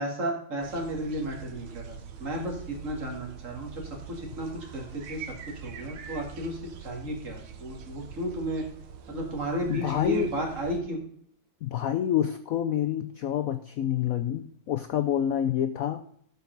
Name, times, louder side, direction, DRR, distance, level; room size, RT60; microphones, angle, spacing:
voice 1, 0.0-3.8 4.1-5.2 5.6-8.6 9.1-11.0, equal, 40° right, 0 dB, 2.6 m, -33 dB
sound 1, 0.6-10.8, right 7 dB, 90° right, 1.7 m, -44 dB
voice 2, 9.7-10.3 11.6-16.0, left 10 dB, 90° left, 10 dB, 0.7 m, -28 dB
12.5 x 6.8 x 3.9 m, 0.65 s
omnidirectional pair, 2.1 m